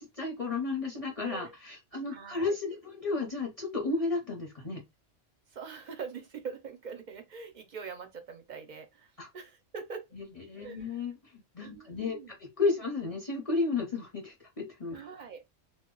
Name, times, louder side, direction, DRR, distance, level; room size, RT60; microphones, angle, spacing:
voice 1, 0.2-4.8 9.2-9.3 10.1-15.0, left 3 dB, 35° left, 0.7 m, -33 dB
voice 2, 1.2-1.5 2.1-2.6 5.5-10.1 10.6-11.0 11.6-12.3 14.9-15.4, right 5 dB, 50° right, 0.5 m, -43 dB
2.2 x 2.0 x 3.7 m
omnidirectional pair, 1.3 m